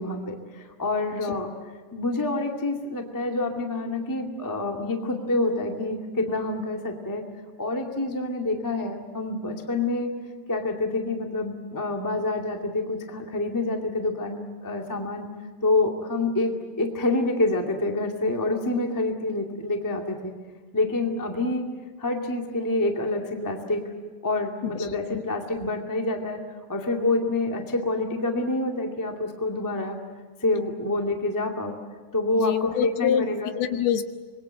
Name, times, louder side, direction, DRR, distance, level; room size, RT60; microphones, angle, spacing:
voice 1, 0.0-1.5 1.9-7.2 7.6-10.1 10.5-15.3 15.6-16.5 16.8-20.3 20.7-21.7 22.0-23.8 24.2-26.4 26.7-30.0 30.4-31.7 32.1-33.5, left 2 dB, 20° left, 2 dB, 0.5 m, -27 dB
voice 2, 24.6-25.2 32.3-34.0, left 9 dB, 70° left, 7 dB, 2.8 m, -27 dB
26.0 x 22.0 x 7.8 m, 1.4 s
omnidirectional pair, 5.0 m